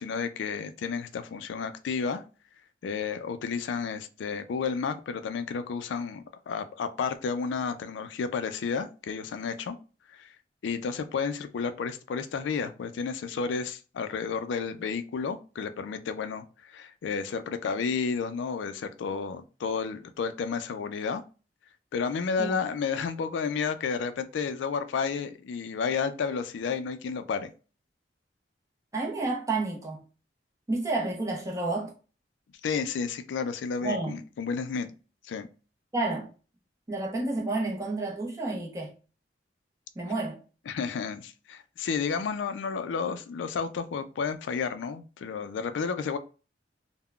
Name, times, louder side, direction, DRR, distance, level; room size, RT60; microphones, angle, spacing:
voice 1, 0.0-2.2 2.8-9.8 10.1-10.3 10.6-21.2 21.9-27.5 32.6-34.9 35.3-35.5 40.7-46.2, left 5 dB, 80° left, 0.3 m, -31 dB
voice 2, 28.9-30.0 30.7-31.9 33.8-34.2 35.9-36.3 36.9-38.9 40.0-40.4, right 2 dB, 20° right, 0.7 m, -30 dB
3.6 x 2.1 x 2.3 m
head